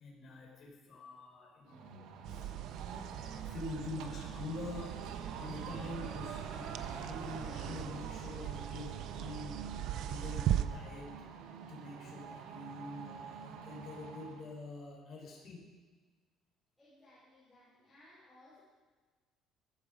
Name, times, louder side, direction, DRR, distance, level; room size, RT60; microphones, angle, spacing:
voice 1, 0.0-2.6 3.1-11.2 11.7-15.7, left 2 dB, 40° left, -1 dB, 4.9 m, -46 dB
sound 1, 1.7-14.5, right 6 dB, 75° right, 1.7 m, -46 dB
sound 2, 2.2-10.7, right 11 dB, 55° right, 0.7 m, -39 dB
voice 2, 16.8-18.6, left 1 dB, 5° left, -12 dB, 6.7 m, -61 dB
17.5 x 15.0 x 5.3 m, 1.4 s
cardioid pair, 180°, 0 cm